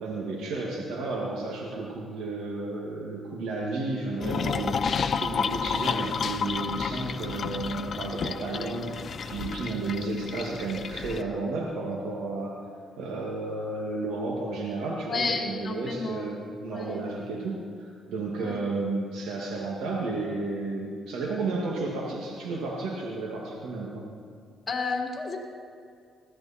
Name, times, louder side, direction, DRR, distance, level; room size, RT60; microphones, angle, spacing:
voice 1, 0.0-12.6 13.0-24.1, right 2 dB, 85° right, -2 dB, 2.2 m, -32 dB
sound 1, 4.2-11.2, left 6 dB, 50° left, 0.7 m, -31 dB
voice 2, 15.1-16.3 16.7-17.1 18.4-18.6 24.7-25.4, left 3 dB, 30° left, -1 dB, 3.5 m, -31 dB
20.5 x 15.0 x 4.4 m, 2.2 s
cardioid pair, 90°, 0 cm